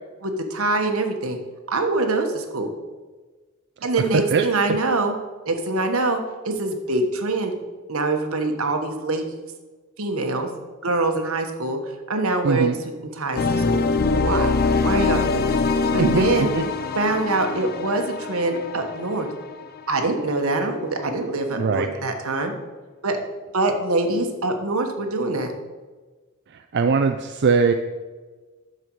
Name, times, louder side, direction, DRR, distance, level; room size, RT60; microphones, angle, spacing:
voice 1, 0.2-1.4 1.7-2.7 3.8-5.1 5.4-7.5 7.9-9.2 10.0-10.5 10.8-11.8 12.1-12.7 13.1-13.8 14.2-14.5 14.8-16.5 16.9-19.3 19.9-22.5 23.0-23.2 23.5-25.5, right 2 dB, 75° right, 4 dB, 1.3 m, -24 dB
voice 2, 3.8-4.4 12.4-12.8 16.0-16.3 16.5-16.7 21.5-21.9 26.7-27.7, right 4 dB, 55° right, 6 dB, 0.5 m, -21 dB
sound 1, 13.4-20.2, left 4 dB, 45° left, 0.6 m, -23 dB
10.0 x 6.9 x 4.6 m, 1.3 s
head